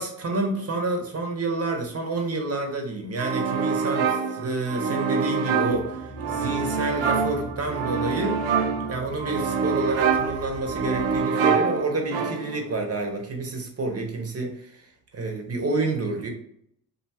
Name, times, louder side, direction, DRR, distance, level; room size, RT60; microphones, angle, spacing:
voice 1, 0.0-8.4 8.9-14.8 15.1-16.3, right 2 dB, 35° right, 2 dB, 0.9 m, -29 dB
sound 1, 3.2-12.7, right 5 dB, 85° right, 0.6 m, -26 dB
sound 2, 5.7-11.3, equal, ahead, 0.9 m, -41 dB
2.6 x 2.3 x 2.8 m, 0.67 s
supercardioid pair, 60°, 43 cm